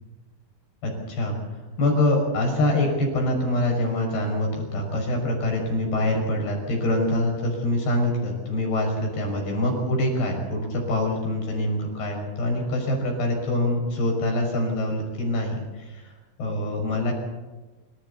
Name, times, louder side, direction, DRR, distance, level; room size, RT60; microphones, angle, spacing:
voice 1, 0.8-1.4 1.8-16.1 16.4-17.1, left 1 dB, 80° left, 1 dB, 7.8 m, -25 dB
27.5 x 15.5 x 8.3 m, 1.2 s
omnidirectional pair, 4.5 m